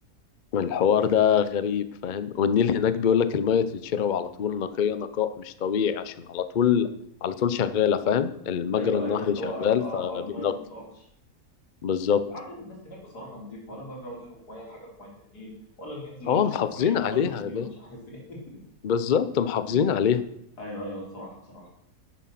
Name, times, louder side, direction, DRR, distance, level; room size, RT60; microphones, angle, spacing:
voice 1, 0.5-6.9 7.2-10.5 11.8-12.2 16.3-17.7 18.8-20.2, left 8 dB, 50° left, 12 dB, 0.5 m, -24 dB
voice 2, 8.7-10.8 12.3-15.5 15.8-16.4 16.7-18.6 20.6-21.7, equal, 85° left, -3 dB, 4.5 m, -39 dB
10.0 x 8.7 x 5.9 m, 0.73 s
omnidirectional pair, 1.7 m